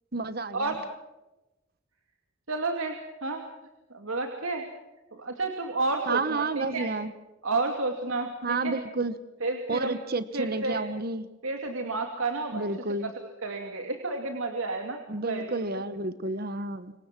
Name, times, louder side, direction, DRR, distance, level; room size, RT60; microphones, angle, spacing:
voice 1, 0.1-0.7 6.1-7.1 8.4-9.1 9.7-11.3 12.5-13.1 15.1-16.9, right 3 dB, 45° right, 13 dB, 1.1 m, -30 dB
voice 2, 2.5-3.5 3.9-4.7 5.1-6.9 7.4-8.8 9.4-10.0 10.3-10.8 11.4-12.6 13.0-13.1 13.4-15.8, right 3 dB, 80° right, 4 dB, 2.6 m, -31 dB
27.0 x 23.5 x 6.1 m, 1.0 s
head